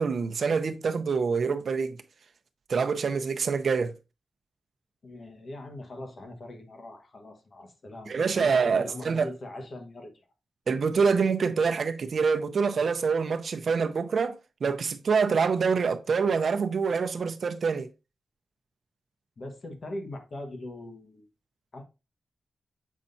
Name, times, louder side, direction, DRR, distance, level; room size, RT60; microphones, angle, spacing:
voice 1, 0.0-2.0 2.7-3.9 8.1-9.3 10.7-17.9, right 5 dB, 60° right, 0.6 m, -26 dB
voice 2, 5.0-10.2 19.4-21.2 21.7-21.8, left 1 dB, 50° left, 1.4 m, -41 dB
7.4 x 5.4 x 2.7 m
wide cardioid pair, 135°, 0 cm